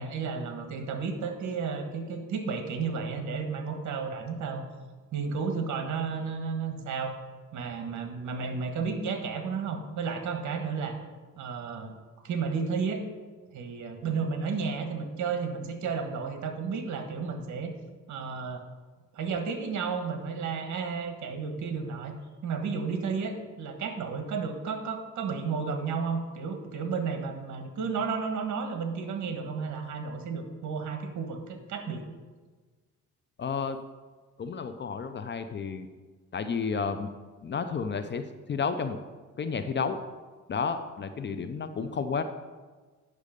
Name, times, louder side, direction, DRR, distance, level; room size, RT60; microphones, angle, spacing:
voice 1, 0.0-4.6 5.1-7.2 7.5-11.0 11.4-11.9 12.2-13.1 13.5-17.7 18.1-18.6 19.1-22.1 22.4-32.0, right 5 dB, 65° right, 6 dB, 1.4 m, -32 dB
voice 2, 33.4-33.8 34.4-35.9 36.3-37.1 37.4-39.0 39.4-40.0 40.5-42.2, left 5 dB, 35° left, 10 dB, 0.5 m, -31 dB
8.4 x 6.2 x 5.1 m, 1.3 s
cardioid pair, 105°, 32 cm